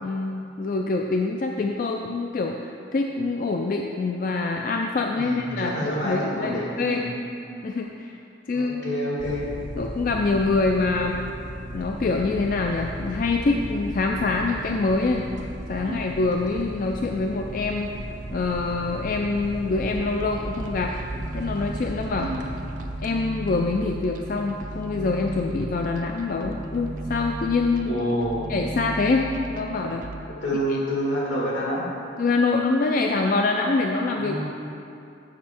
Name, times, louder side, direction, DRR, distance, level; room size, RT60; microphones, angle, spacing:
voice 1, 0.0-7.1 7.6-8.2 8.5-8.8 9.8-11.2 11.7-15.3 15.7-17.9 18.3-20.9 21.3-22.3 23.0-28.0 28.5-30.1 30.7-30.8 32.2-34.5, left 3 dB, 45° left, 2 dB, 0.3 m, -25 dB
voice 2, 5.1-7.1 8.5-9.5 15.8-16.1 22.1-22.4 27.8-28.5 30.3-31.9 34.1-34.5, equal, 80° left, -4 dB, 1.7 m, -28 dB
sound 1, 9.2-27.7, right 1 dB, 85° right, 0.9 m, -37 dB
sound 2, 20.2-30.2, right 2 dB, 45° right, 0.4 m, -36 dB
7.4 x 6.2 x 4.4 m, 2.6 s
head